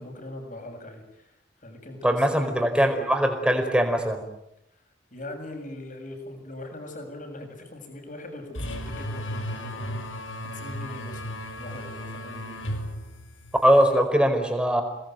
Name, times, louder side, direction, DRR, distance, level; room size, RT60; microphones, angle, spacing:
voice 1, 0.0-1.4 1.6-3.1 5.1-12.6, left 1 dB, 40° left, 4 dB, 7.3 m, -41 dB
voice 2, 2.0-4.2 13.6-14.8, equal, 5° right, 4 dB, 4.7 m, -21 dB
sound 1, 8.5-13.9, equal, 75° left, 6.0 m, -35 dB
29.5 x 20.5 x 9.3 m, 0.82 s
head